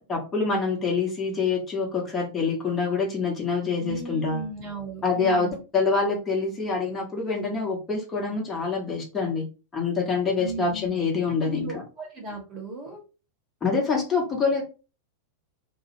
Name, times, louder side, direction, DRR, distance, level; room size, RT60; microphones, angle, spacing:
voice 1, 0.1-4.4 5.0-9.4 9.7-11.8 13.6-14.6, left 4 dB, 20° left, -1 dB, 0.9 m, -26 dB
voice 2, 3.8-5.6 10.4-11.0 11.3-13.0, right 3 dB, 30° right, 0 dB, 1.0 m, -36 dB
2.2 x 2.0 x 2.9 m, 0.32 s
figure-of-eight pair, 90°, 0 cm